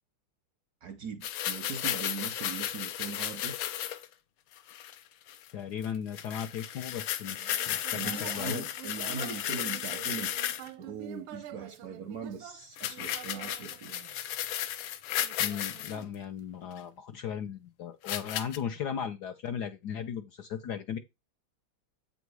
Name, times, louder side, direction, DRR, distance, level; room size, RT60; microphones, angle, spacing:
voice 1, 0.8-3.6 7.9-10.3 10.8-13.9, right 5 dB, 65° right, 0.9 m, -40 dB
sound 1, 1.2-4.1 4.6-5.0 5.3-5.5 5.8-5.9 6.1-10.7 12.8-16.0 16.8-16.9 18.1-18.6, left 11 dB, 85° left, 1.6 m, -34 dB
voice 2, 5.5-8.7 15.4-21.0, left 8 dB, 70° left, 1.0 m, -37 dB
Human voice, 7.2-14.6 15.2-16.6, right 10 dB, 85° right, 1.5 m, -48 dB
8.1 x 4.1 x 4.7 m
omnidirectional pair, 2.3 m